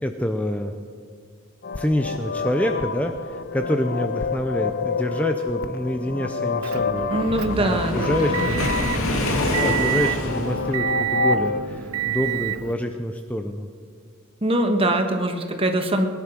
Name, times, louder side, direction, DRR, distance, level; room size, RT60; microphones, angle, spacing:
voice 1, 0.0-0.7 1.8-7.1 7.6-8.6 9.0-13.7, left 1 dB, 5° left, 6 dB, 0.6 m, -27 dB
sound 1, 1.6-11.6, left 4 dB, 45° left, 0.7 m, -28 dB
Motor vehicle (road) / Engine, 6.6-12.7, right 10 dB, 80° right, 0.7 m, -29 dB
voice 2, 7.1-8.4 14.4-16.1, right 1 dB, 25° right, 5 dB, 1.4 m, -23 dB
Waves surf, 7.4-10.7, left 1 dB, 75° left, 2.6 m, -26 dB
20.0 x 11.0 x 6.1 m, 2.1 s
head